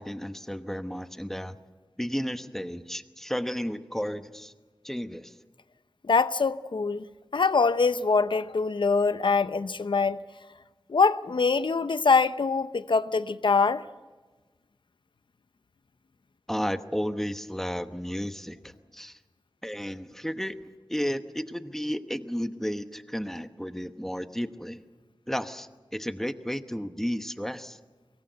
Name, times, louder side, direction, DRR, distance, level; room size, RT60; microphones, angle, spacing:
voice 1, 0.0-1.6 2.0-4.5 4.8-5.3 16.5-19.2 19.6-20.6 20.9-24.8 25.3-27.8, equal, 5° left, 1.0 m, -33 dB
voice 2, 6.1-7.1 7.3-10.2 10.9-13.8, left 4 dB, 75° left, 0.7 m, -24 dB
23.5 x 18.5 x 8.0 m
wide cardioid pair, 65°, 8 cm